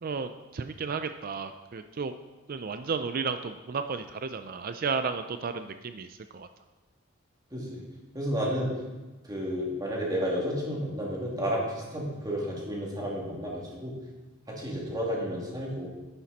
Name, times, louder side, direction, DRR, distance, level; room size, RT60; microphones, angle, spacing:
voice 1, 0.0-2.1 2.5-6.5, right 5 dB, 45° right, 9 dB, 0.4 m, -33 dB
voice 2, 7.5-7.8 8.1-8.7 9.2-13.9 14.5-15.9, equal, 20° right, -3 dB, 2.5 m, -31 dB
11.0 x 10.0 x 4.2 m, 1.2 s
head